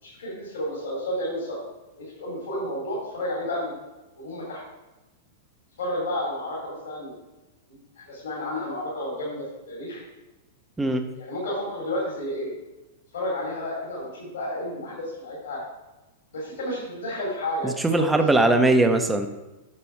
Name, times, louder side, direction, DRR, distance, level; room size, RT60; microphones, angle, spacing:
voice 1, 0.0-1.6 2.0-3.7 4.2-4.6 5.8-7.2 7.7-7.8 8.0-10.0 11.2-12.5 13.1-15.6 16.3-18.2, left 1 dB, 75° left, -5 dB, 3.2 m, -31 dB
voice 2, 17.6-19.3, right 2 dB, 10° right, 7 dB, 0.9 m, -20 dB
8.8 x 6.0 x 4.6 m, 1.1 s
hypercardioid pair, 105°, 0 cm